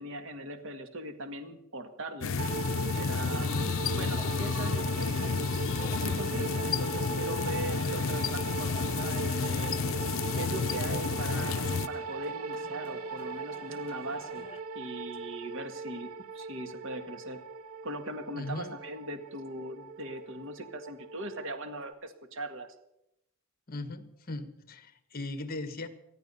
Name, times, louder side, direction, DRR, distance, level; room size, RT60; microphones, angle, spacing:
voice 1, 0.0-2.4 2.9-3.5 3.9-5.3 6.0-9.8 10.3-14.5 14.8-17.4 17.8-22.8, right 1 dB, 65° right, 7 dB, 1.8 m, -40 dB
sound 1, 2.2-11.9, left 5 dB, 70° left, 0.7 m, -31 dB
sound 2, 2.4-21.9, right 5 dB, 80° right, 0.7 m, -40 dB
voice 2, 3.3-3.7 18.3-18.7 23.7-25.9, left 2 dB, 45° left, 10 dB, 1.6 m, -38 dB
sound 3, 4.2-14.6, left 3 dB, 25° left, 0.7 m, -48 dB
19.5 x 13.5 x 5.6 m, 0.83 s
head